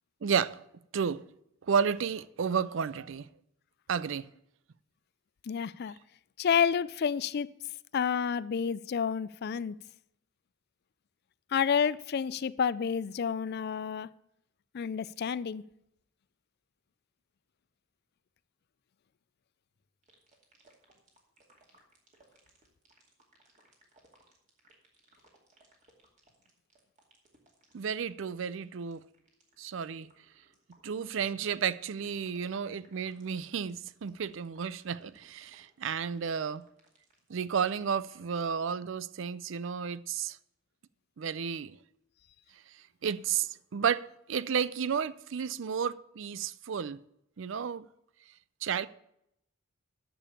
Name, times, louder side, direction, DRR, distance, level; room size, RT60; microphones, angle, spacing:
voice 1, 0.2-0.6 0.9-1.2 1.7-3.3 3.9-4.3 27.7-29.0 29.6-30.1 30.8-36.6 37.3-40.4 41.2-41.8 43.0-47.0 47.4-47.9 48.6-48.9, right 7 dB, 60° right, 0.4 m, -32 dB
voice 2, 5.5-6.0 6.4-7.5 7.9-9.8 11.5-14.1 14.7-15.6, left 7 dB, 50° left, 0.4 m, -29 dB
sound 1, 20.0-38.8, right 2 dB, 35° right, 2.3 m, -64 dB
10.0 x 7.0 x 7.0 m
head